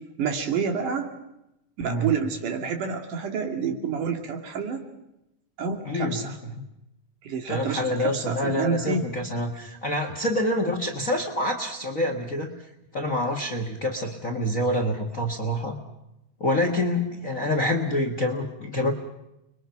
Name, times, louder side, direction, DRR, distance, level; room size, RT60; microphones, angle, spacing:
voice 1, 0.2-1.1 1.8-4.8 5.6-6.3 7.2-9.0, right 6 dB, 75° right, 4 dB, 3.7 m, -28 dB
voice 2, 5.8-6.6 7.5-12.5 12.9-15.8 16.4-18.9, left 1 dB, 35° left, 5 dB, 1.4 m, -27 dB
29.5 x 22.5 x 5.9 m, 0.88 s
omnidirectional pair, 3.7 m